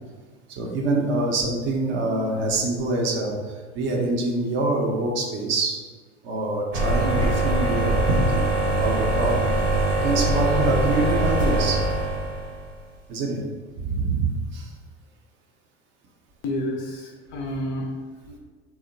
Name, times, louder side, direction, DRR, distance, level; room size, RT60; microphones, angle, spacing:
voice 1, 0.6-3.4 3.7-5.8 6.2-9.6 10.0-11.8 13.1-13.4 13.8-14.7, right 2 dB, 35° right, 0 dB, 0.5 m, -25 dB
sound 1, 6.7-12.7, right 1 dB, 85° right, 0.7 m, -23 dB
voice 2, 16.4-18.4, left 1 dB, 35° left, 0 dB, 0.4 m, -30 dB
2.9 x 2.0 x 2.6 m, 1.4 s
figure-of-eight pair, 80°, 35 cm